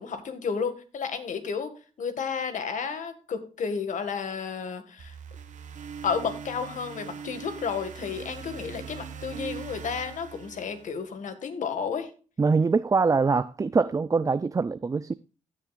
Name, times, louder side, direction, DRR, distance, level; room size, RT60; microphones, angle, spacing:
voice 1, 0.0-5.1 6.0-12.1, left 6 dB, 70° left, 1.8 m, -32 dB
sound 1, 5.0-11.2, right 6 dB, 65° right, 1.4 m, -41 dB
voice 2, 12.4-15.1, right 4 dB, 25° right, 0.4 m, -23 dB
16.0 x 7.3 x 2.4 m
cardioid pair, 70°, 14 cm